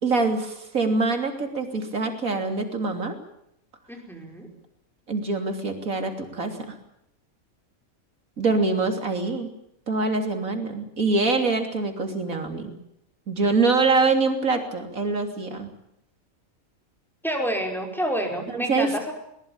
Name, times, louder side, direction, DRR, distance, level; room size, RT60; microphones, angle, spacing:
voice 1, 0.0-3.2 5.1-6.8 8.4-9.5 9.9-12.8 13.3-15.7 18.5-18.9, right 3 dB, 75° right, 5 dB, 3.6 m, -24 dB
voice 2, 3.9-4.5 17.2-19.1, equal, ahead, 2 dB, 5.2 m, -28 dB
21.5 x 20.0 x 8.8 m, 0.77 s
omnidirectional pair, 1.5 m